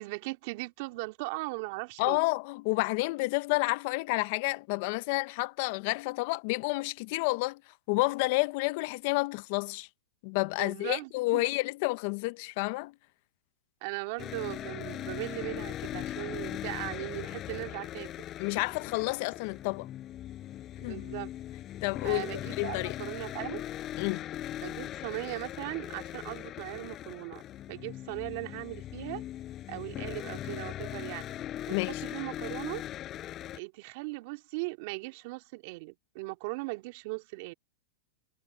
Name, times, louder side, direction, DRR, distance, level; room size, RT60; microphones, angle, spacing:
voice 1, 0.0-2.2 10.6-11.5 13.8-18.3 20.8-21.3 22.0-23.6 24.6-27.4 27.7-29.2 29.7-31.2 31.7-32.8 33.5-37.5, right 25 dB, 55° right, 2.0 m, -38 dB
voice 2, 2.0-7.6 7.9-9.9 10.2-12.9 18.4-19.9 20.8-21.0 21.8-23.0 24.0-24.2 31.7-32.0, left 24 dB, 55° left, 0.6 m, -30 dB
sound 1, 14.2-33.6, left 12 dB, 30° left, 4.5 m, -40 dB
hypercardioid pair, 125°, 0 cm